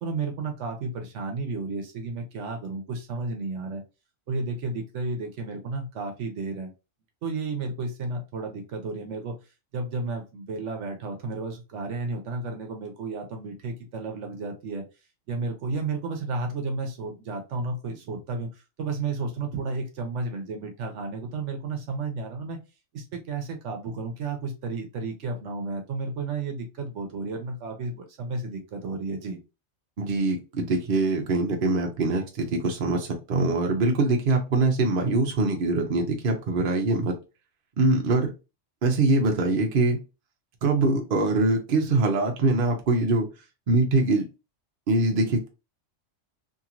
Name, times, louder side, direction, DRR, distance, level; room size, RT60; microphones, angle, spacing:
voice 1, 0.0-3.8 4.3-6.7 7.2-9.4 9.7-14.8 15.3-22.6 22.9-29.4, right 3 dB, 75° right, 4 dB, 1.0 m, -32 dB
voice 2, 30.0-37.1 37.8-38.3 38.8-40.0 40.6-43.3 43.7-44.3 44.9-45.5, right 2 dB, 50° right, 2 dB, 0.8 m, -23 dB
2.9 x 2.8 x 2.4 m, 0.28 s
omnidirectional pair, 1.3 m